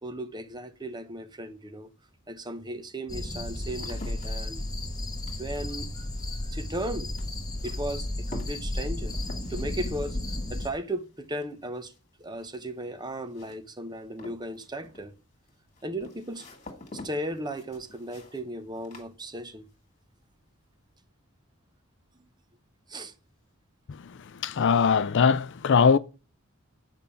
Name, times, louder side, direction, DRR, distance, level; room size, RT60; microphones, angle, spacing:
voice 1, 0.0-1.9 2.3-4.6 5.4-5.9 6.5-7.1 7.6-9.1 9.5-10.2 10.5-11.9 12.2-15.1 15.8-16.5 16.9-19.7 22.1-22.2 22.9-23.1, right 1 dB, 20° right, 0.8 m, -36 dB
sound 1, 1.9-2.0 2.6-19.8 20.1-20.7, left 2 dB, 35° left, 2.0 m, -49 dB
sound 2, 3.1-10.7, left 1 dB, 20° left, 1.1 m, -33 dB
voice 2, 24.4-26.0, left 6 dB, 55° left, 0.4 m, -21 dB
9.1 x 5.3 x 7.0 m
head